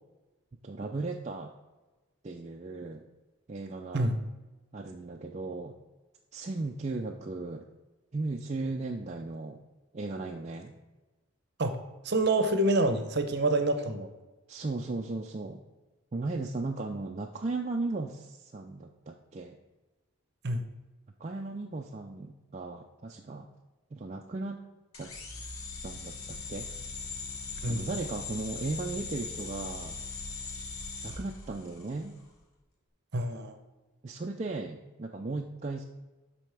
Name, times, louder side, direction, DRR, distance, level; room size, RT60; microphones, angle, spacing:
voice 1, 0.6-1.5 2.2-3.0 3.5-4.1 4.7-5.8 6.3-7.7 8.1-9.6 9.9-10.8 14.5-15.6 16.1-19.6 21.2-23.5 23.9-24.6 24.9-25.1 25.8-26.7 27.7-30.0 31.0-32.2 34.0-35.8, right 3 dB, 30° right, 1 dB, 0.4 m, -36 dB
voice 2, 12.0-14.1 20.4-20.6 27.6-27.9 33.1-33.5, right 2 dB, 50° right, 8 dB, 0.7 m, -27 dB
sound 1, 24.9-32.1, left 4 dB, 85° left, 1.3 m, -40 dB
12.0 x 4.2 x 3.4 m, 1.1 s
head